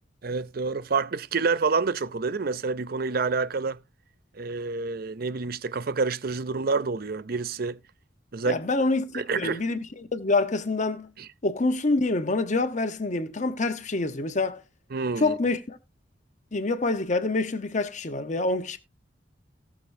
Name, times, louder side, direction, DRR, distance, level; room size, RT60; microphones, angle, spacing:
voice 1, 0.2-3.8 4.3-7.8 8.3-8.6 9.1-9.6 11.2-11.3 14.9-15.4, right 4 dB, 55° right, 0.6 m, -28 dB
voice 2, 8.4-11.1 11.4-14.6 15.2-15.8 16.5-18.8, left 2 dB, 40° left, 1.0 m, -26 dB
18.0 x 6.2 x 2.7 m
head